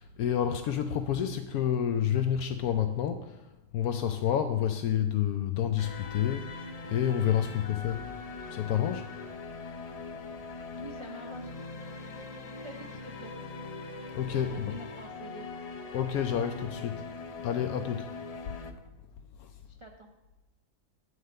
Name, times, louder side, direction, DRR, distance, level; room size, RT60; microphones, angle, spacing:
voice 1, 0.0-8.1 8.5-9.1 14.1-14.7 15.9-17.1 17.4-18.4 19.4-19.5, left 9 dB, 80° left, 8 dB, 1.0 m, -29 dB
sound 1, 5.8-18.7, left 4 dB, 60° left, 0.4 m, -42 dB
voice 2, 10.8-11.5 12.6-13.4 14.3-15.5 19.6-20.1, right 2 dB, 35° right, 2 dB, 0.5 m, -46 dB
9.5 x 4.9 x 6.6 m, 1.0 s
omnidirectional pair, 1.6 m